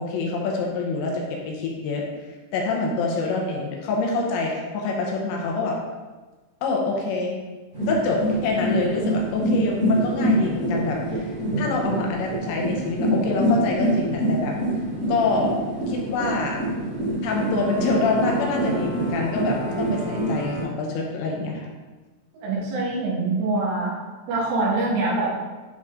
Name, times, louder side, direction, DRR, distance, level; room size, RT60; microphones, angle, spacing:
voice 1, 0.0-2.0 2.5-5.8 6.6-7.4 7.9-14.5 15.1-15.5 15.9-16.6 17.2-21.7, left 3 dB, 75° left, -1 dB, 3.0 m, -26 dB
sound 1, 7.7-20.6, right 1 dB, 30° right, 0.9 m, -25 dB
voice 2, 22.4-24.0 24.3-25.3, right 2 dB, 85° right, -5 dB, 4.1 m, -24 dB
9.9 x 4.0 x 3.6 m, 1.2 s
omnidirectional pair, 5.6 m